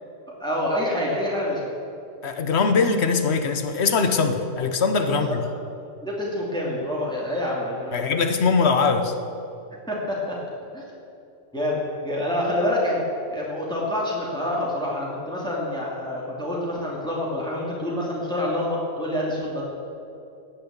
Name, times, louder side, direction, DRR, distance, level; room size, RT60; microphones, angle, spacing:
voice 1, 0.4-1.6 5.1-5.5 6.0-8.2 9.9-10.4 10.7-10.8 11.5-13.0 13.3-19.6, left 1 dB, 5° left, -4 dB, 2.4 m, -27 dB
voice 2, 2.2-5.4 7.9-9.1, left 4 dB, 75° left, 7 dB, 1.3 m, -21 dB
18.5 x 6.4 x 8.0 m, 2.7 s
omnidirectional pair, 1.1 m